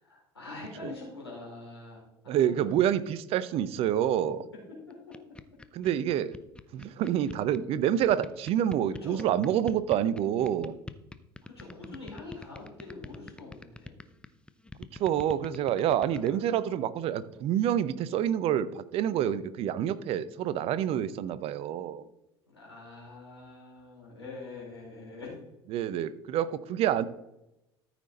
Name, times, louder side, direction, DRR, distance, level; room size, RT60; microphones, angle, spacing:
voice 1, 0.0-2.9 9.0-9.2 11.4-13.9 16.0-16.4 22.5-25.3, left 3 dB, 90° left, -4 dB, 4.0 m, -44 dB
voice 2, 2.3-4.5 5.7-6.4 6.7-10.8 15.0-22.1 25.7-27.1, right 10 dB, 50° right, 16 dB, 0.7 m, -27 dB
sound 1, 4.9-16.3, left 2 dB, 10° left, 0.7 m, -42 dB
13.5 x 6.0 x 4.0 m, 0.89 s
figure-of-eight pair, 65°, 13 cm